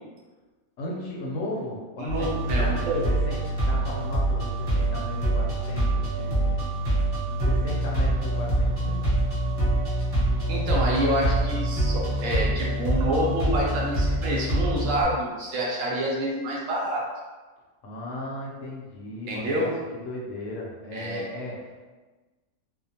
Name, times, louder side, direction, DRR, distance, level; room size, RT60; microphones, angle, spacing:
voice 1, 0.8-6.7 7.4-9.1 17.8-21.9, left 1 dB, 70° left, -2 dB, 0.9 m, -36 dB
voice 2, 2.0-3.0 10.5-17.0 19.3-19.7 20.9-21.3, right 1 dB, 70° right, -3 dB, 1.0 m, -27 dB
sound 1, 2.1-15.0, right 1 dB, 20° right, 0.8 m, -25 dB
2.4 x 2.2 x 2.7 m, 1.3 s
omnidirectional pair, 1.5 m